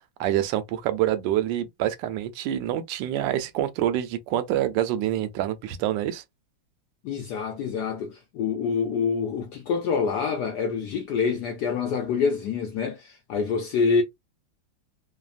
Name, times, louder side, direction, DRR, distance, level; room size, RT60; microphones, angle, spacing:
voice 1, 0.2-6.2, right 12 dB, 75° right, 1.2 m, -26 dB
voice 2, 7.0-14.0, left 5 dB, 75° left, 0.9 m, -26 dB
3.2 x 2.1 x 2.4 m
omnidirectional pair, 2.2 m